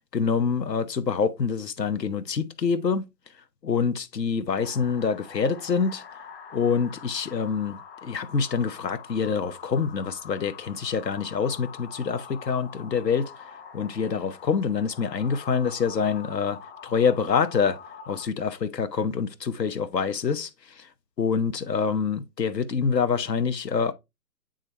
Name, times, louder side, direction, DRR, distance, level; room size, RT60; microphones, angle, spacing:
voice 1, 0.1-3.0 3.6-6.0 6.5-13.5 13.7-17.8 18.1-20.5 20.8-20.9 21.2-23.9, left 6 dB, 80° left, 0.9 m, -26 dB
sound 1, 4.6-18.3, left 7 dB, 35° left, 1.1 m, -45 dB
8.7 x 3.7 x 3.1 m
figure-of-eight pair, 150°, 49 cm